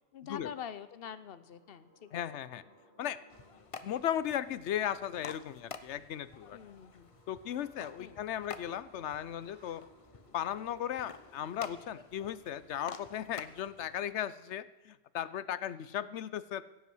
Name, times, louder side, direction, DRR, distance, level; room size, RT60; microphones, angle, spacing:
voice 1, 0.1-2.2 6.5-7.1 8.0-8.2, left 8 dB, 60° left, 13 dB, 1.0 m, -45 dB
sound 1, 0.6-13.7, equal, 55° right, 2.7 m, -64 dB
voice 2, 2.1-2.6 3.0-3.2 3.8-6.6 7.3-9.8 10.3-16.6, left 10 dB, 85° left, 16 dB, 1.0 m, -36 dB
sound 2, 3.3-14.1, left 5 dB, 35° left, 0.6 m, -51 dB
16.0 x 8.3 x 7.9 m, 1.1 s
omnidirectional pair, 1.1 m